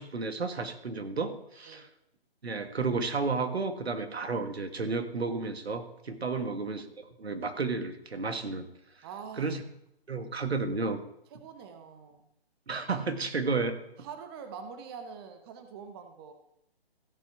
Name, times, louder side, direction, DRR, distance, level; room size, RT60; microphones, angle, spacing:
voice 1, 0.0-1.9 2.4-8.7 9.4-9.6 10.1-11.0 12.7-13.8, right 4 dB, 85° right, 9 dB, 1.5 m, -32 dB
voice 2, 9.0-9.5 11.3-12.3 14.0-16.3, right 6 dB, 25° right, 7 dB, 1.0 m, -45 dB
15.5 x 5.6 x 4.8 m, 0.78 s
hypercardioid pair, 145°, 31 cm